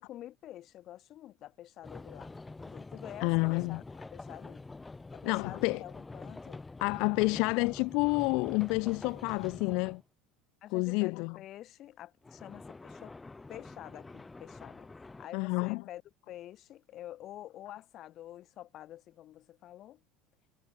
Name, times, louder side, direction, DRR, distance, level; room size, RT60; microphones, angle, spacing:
voice 1, 0.0-2.3 2.6-3.8 4.1-4.6 5.1-6.6 10.6-13.2 13.5-14.9 15.2-16.0 16.3-20.0, left 13 dB, 40° left, 1.0 m, -48 dB
sound 1, 1.8-10.0 12.2-15.3, left 3 dB, 10° left, 2.3 m, -46 dB
voice 2, 3.2-3.8 5.2-5.8 6.8-10.0 10.7-11.4 15.3-15.8, left 30 dB, 60° left, 0.4 m, -29 dB
cardioid pair, 165°, 0 cm